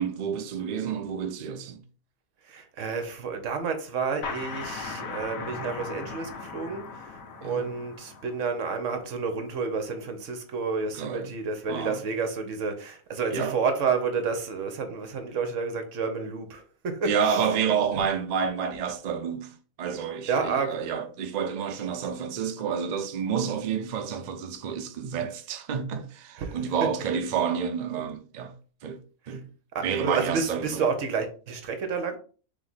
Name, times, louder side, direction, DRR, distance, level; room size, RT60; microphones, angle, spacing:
voice 1, 0.0-1.8 7.4-7.7 10.9-11.3 11.7-12.0 13.3-13.6 17.0-28.5 28.8-29.0 29.3-29.5 29.8-30.8, right 7 dB, 85° right, 0.3 m, -29 dB
voice 2, 2.5-7.2 7.4-17.6 17.9-18.0 20.3-20.9 26.4-27.0 29.3-29.4 29.7-32.2, right 5 dB, 65° right, 1.1 m, -30 dB
sound 1, 4.2-9.6, left 5 dB, 75° left, 1.2 m, -39 dB
3.4 x 3.2 x 3.9 m
omnidirectional pair, 1.5 m